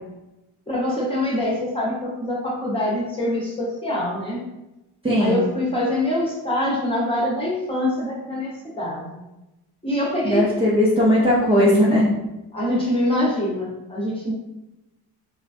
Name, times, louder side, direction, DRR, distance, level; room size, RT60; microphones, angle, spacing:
voice 1, 0.7-4.4 5.2-9.2 9.8-10.5 12.5-14.3, left 1 dB, 15° left, -5 dB, 1.0 m, -24 dB
voice 2, 5.0-5.4 10.2-12.1, equal, 15° right, -7 dB, 0.7 m, -18 dB
2.9 x 2.3 x 2.6 m, 0.95 s
supercardioid pair, 85°, 42 cm